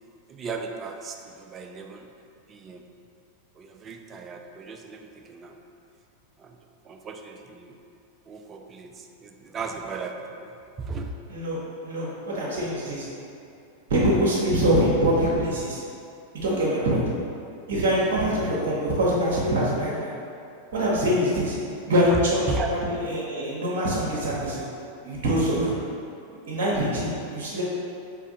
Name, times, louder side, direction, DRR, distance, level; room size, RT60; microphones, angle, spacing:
voice 1, 0.3-2.1 2.5-2.8 3.6-5.6 6.4-6.6 6.8-7.8 8.3-10.5 10.8-11.1 22.1-22.2 22.5-22.7, right 4 dB, 25° right, 3 dB, 0.3 m, -36 dB
voice 2, 11.3-11.6 11.8-13.1 13.9-15.8 16.4-17.1 17.7-20.1 20.7-21.6 21.9-24.7 25.0-25.7 26.5-27.6, equal, 55° right, -6 dB, 0.8 m, -24 dB
3.4 x 3.3 x 3.7 m, 2.6 s
figure-of-eight pair, 90°, 0 cm